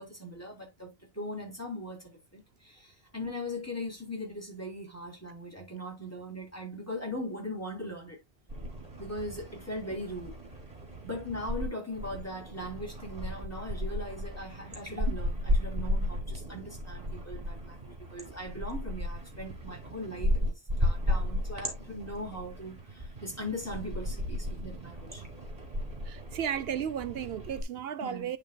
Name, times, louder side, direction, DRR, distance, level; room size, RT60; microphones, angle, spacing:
voice 1, 0.0-8.2 9.0-10.4 11.0-20.5 20.8-25.2 28.0-28.3, left 1 dB, 15° left, 3.3 m, -39 dB
sound 1, 8.5-11.7 11.9-27.6, left 1 dB, 35° right, 2.7 m, -34 dB
voice 2, 26.1-28.4, right 9 dB, 70° right, 0.8 m, -34 dB
10.5 x 5.3 x 2.2 m
omnidirectional pair, 1.1 m